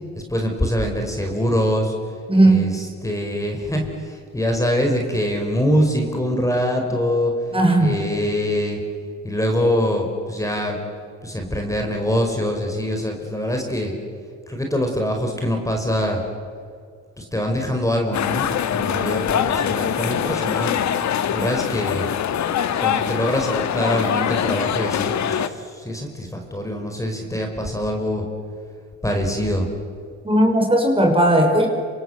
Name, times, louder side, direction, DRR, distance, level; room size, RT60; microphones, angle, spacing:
voice 1, 0.1-1.9 2.4-7.3 7.8-8.8 9.2-10.8 11.2-13.9 14.5-16.2 17.2-20.8 21.3-22.1 22.8-28.2 29.0-29.7, equal, 10° left, 2 dB, 4.8 m, -24 dB
voice 2, 2.3-2.8 7.5-8.0 30.2-31.7, right 1 dB, 20° right, 3 dB, 5.5 m, -16 dB
sound 1, 18.1-25.5, left 9 dB, 65° left, 1.6 m, -23 dB
27.5 x 26.0 x 8.0 m, 2.2 s
cardioid pair, 90°, 30 cm